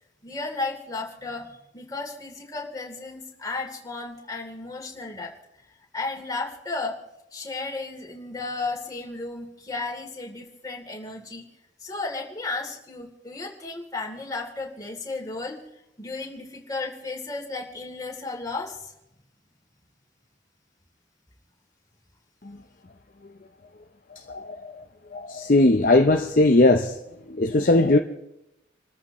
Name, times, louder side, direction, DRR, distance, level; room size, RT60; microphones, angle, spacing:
voice 1, 0.2-5.3 5.9-7.0 7.3-11.4 11.8-15.6 16.0-18.9, left 3 dB, 20° left, 3.1 m, -34 dB
voice 2, 25.1-26.9 27.4-28.0, left 2 dB, 45° left, 0.7 m, -18 dB
29.0 x 14.0 x 3.1 m
head